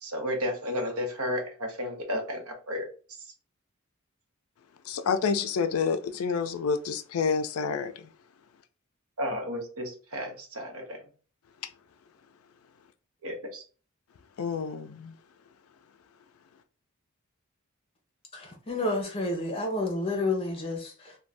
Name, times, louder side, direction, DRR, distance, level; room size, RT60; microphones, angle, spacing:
voice 1, 0.0-2.9 9.2-11.0 13.2-13.6, equal, 75° right, 0.8 m, -33 dB
voice 2, 4.9-8.1 14.4-15.1, left 5 dB, 75° left, 0.4 m, -28 dB
voice 3, 18.3-21.2, left 2 dB, 25° left, 0.7 m, -30 dB
2.5 x 2.2 x 3.2 m
head